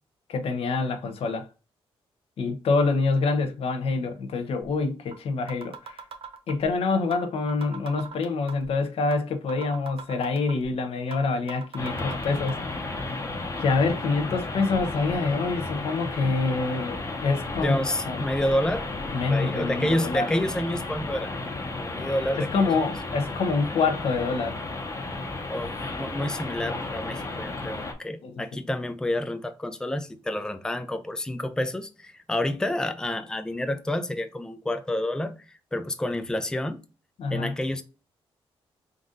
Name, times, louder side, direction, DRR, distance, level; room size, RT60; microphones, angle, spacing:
voice 1, 0.3-1.5 2.4-6.0 6.5-12.6 12.9-13.2 13.6-17.8 18.1-18.3 19.1-20.3 22.4-24.6 28.2-28.4 37.2-37.5, left 4 dB, 70° left, 0.7 m, -26 dB
sound 1, 4.7-4.8 5.1-5.2 5.5-6.7 7.1-7.2 7.5-8.7 9.1-9.2 9.5-10.7 11.1-11.2 11.5-12.5, right 6 dB, 65° right, 0.7 m, -40 dB
sound 2, 11.8-27.9, left 2 dB, 30° left, 0.8 m, -33 dB
voice 2, 17.6-18.9 19.3-21.3 21.7-22.7 25.5-35.3 35.7-36.8 37.3-37.8, left 1 dB, 5° left, 0.5 m, -29 dB
3.8 x 2.5 x 3.7 m
cardioid pair, 100°, 10 cm